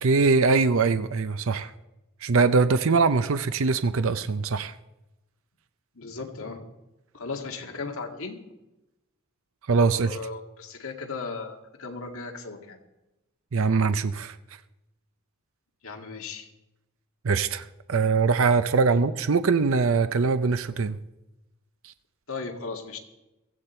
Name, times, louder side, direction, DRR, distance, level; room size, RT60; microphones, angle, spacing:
voice 1, 0.0-1.7 2.2-4.8 9.7-10.2 13.5-14.4 17.2-21.0 21.8-21.9, right 4 dB, 60° right, 12 dB, 0.6 m, -22 dB
voice 2, 6.0-6.6 7.1-8.4 9.9-12.8 15.8-16.5 18.9-19.0 22.3-23.0, left 4 dB, 65° left, 3 dB, 2.0 m, -36 dB
16.0 x 15.0 x 4.4 m, 0.98 s
head